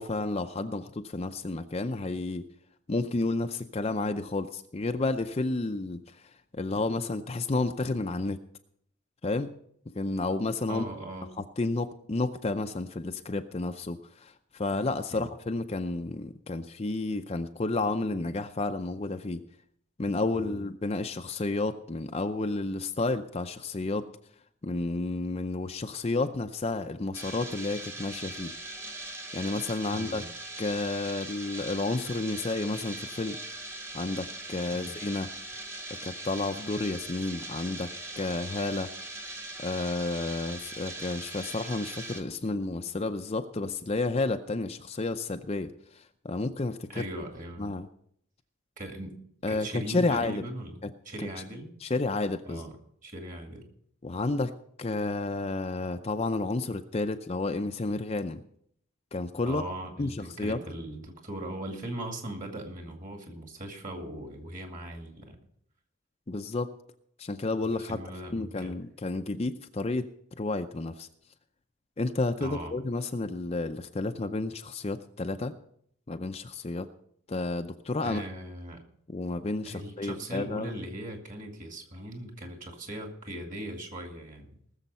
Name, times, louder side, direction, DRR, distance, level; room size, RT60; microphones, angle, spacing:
voice 1, 0.0-2.4 2.9-8.4 9.2-9.5 10.0-10.8 11.4-19.4 20.0-24.1 24.6-28.5 29.3-30.2 30.6-33.4 33.9-35.3 36.0-37.9 38.2-38.9 39.6-47.0 47.6-47.9 49.4-50.4 50.8-50.9 51.2-51.3 51.8-52.6 54.0-54.5 54.8-58.4 59.1-59.6 60.0-60.6 66.3-66.7 67.2-68.0 68.3-70.1 70.4-71.1 72.0-75.5 76.1-76.9 77.3-78.2 79.1-80.7, left 2 dB, 30° left, 7 dB, 0.5 m, -31 dB
voice 2, 10.7-11.3 15.1-15.3 20.3-20.6 29.9-30.3 34.7-35.0 46.9-47.7 48.8-49.1 49.5-51.7 52.5-52.8 53.0-53.7 59.4-65.4 67.9-68.8 72.4-72.7 78.0-78.8 79.7-84.6, right 1 dB, 35° right, 3 dB, 2.3 m, -39 dB
sound 1, 27.1-42.2, right 2 dB, 10° right, 1.2 m, -40 dB
18.5 x 7.2 x 5.5 m, 0.68 s
head